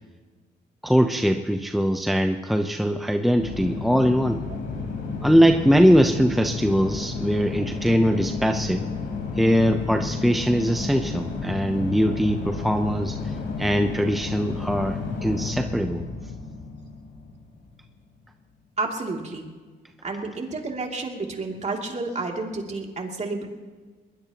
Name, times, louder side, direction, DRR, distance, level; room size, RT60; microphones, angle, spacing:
voice 1, 0.8-4.4 5.2-8.8 9.4-16.0, equal, ahead, 6 dB, 0.8 m, -21 dB
sound 1, 3.4-17.8, left 4 dB, 70° left, 4.1 m, -32 dB
voice 2, 18.8-19.5 20.0-23.5, right 3 dB, 35° right, 1 dB, 2.8 m, -30 dB
22.0 x 19.5 x 3.0 m, 1.4 s
cardioid pair, 90°, 20 cm